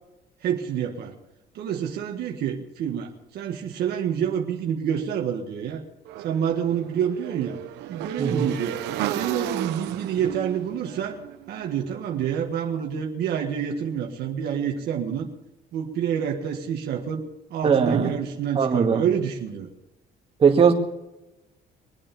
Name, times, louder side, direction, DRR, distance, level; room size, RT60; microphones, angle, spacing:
voice 1, 0.4-1.1 1.5-5.8 6.2-7.6 7.9-8.8 9.1-11.2 11.5-15.3 15.7-17.2 17.5-19.7, right 8 dB, 70° right, 2 dB, 1.7 m, -28 dB
Motorcycle / Engine, 6.1-12.2, right 12 dB, 85° right, 0.9 m, -33 dB
voice 2, 17.6-18.1 18.6-19.0 20.4-20.7, right 6 dB, 35° right, 1 dB, 2.2 m, -19 dB
22.5 x 8.8 x 7.0 m, 0.99 s
cardioid pair, 110°, 17 cm